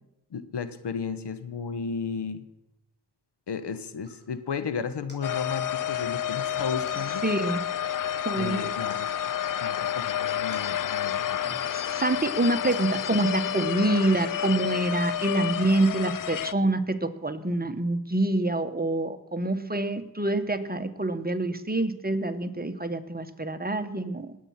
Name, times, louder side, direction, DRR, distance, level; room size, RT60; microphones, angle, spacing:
voice 1, 0.3-2.5 3.5-7.2 8.3-9.1 9.6-11.6, left 5 dB, 70° left, 12 dB, 1.2 m, -34 dB
sound 1, 4.0-4.4 5.1-6.2 6.9-7.6 8.0-8.6 8.9-11.4 11.9-12.0 12.7-13.8, left 1 dB, 25° left, 6.0 m, -55 dB
sound 2, 5.2-16.5, left 10 dB, 50° left, 0.5 m, -30 dB
voice 2, 7.2-7.6 8.2-8.7 11.4-24.4, right 2 dB, 20° right, 9 dB, 1.4 m, -26 dB
20.0 x 8.6 x 5.8 m, 0.90 s
cardioid pair, 40°, 42 cm